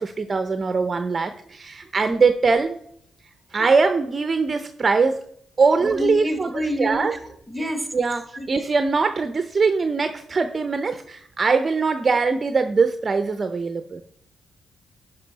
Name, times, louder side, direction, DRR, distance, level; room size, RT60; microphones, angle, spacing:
voice 1, 0.0-2.8 3.5-5.2 5.6-7.1 7.9-8.2 8.5-14.0, right 4 dB, 40° right, 9 dB, 0.7 m, -22 dB
voice 2, 5.8-7.9 8.3-8.5, equal, 10° right, 8 dB, 1.6 m, -28 dB
11.0 x 5.5 x 4.1 m, 0.67 s
cardioid pair, 70°, 0 cm